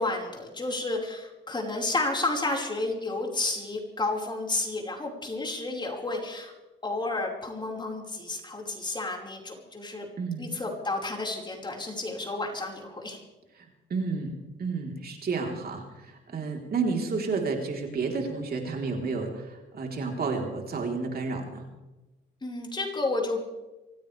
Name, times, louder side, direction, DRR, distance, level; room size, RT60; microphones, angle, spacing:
voice 1, 0.0-6.5 6.8-10.1 10.4-13.2 22.4-23.4, left 2 dB, 25° left, -1 dB, 5.1 m, -31 dB
voice 2, 13.6-14.3 14.6-21.7, right 4 dB, 50° right, 1 dB, 4.0 m, -31 dB
25.0 x 16.5 x 3.5 m, 1.1 s
cardioid pair, 90°, 20 cm